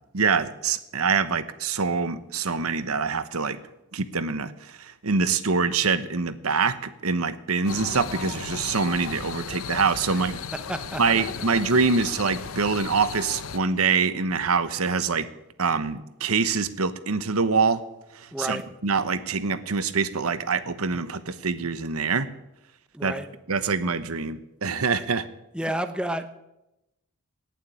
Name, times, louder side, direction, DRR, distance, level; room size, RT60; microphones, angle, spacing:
voice 1, 0.1-3.6 3.9-4.5 4.8-10.4 11.0-15.3 15.6-17.8 18.4-22.3 23.0-23.1 23.5-25.2, right 5 dB, 80° right, 13 dB, 1.1 m, -25 dB
sound 1, 7.7-13.6, left 6 dB, 70° left, 0.8 m, -35 dB
voice 2, 10.5-11.2 18.3-18.6 22.9-23.3 25.5-26.3, right 1 dB, 5° right, 9 dB, 0.9 m, -31 dB
18.5 x 7.4 x 8.7 m, 0.90 s
head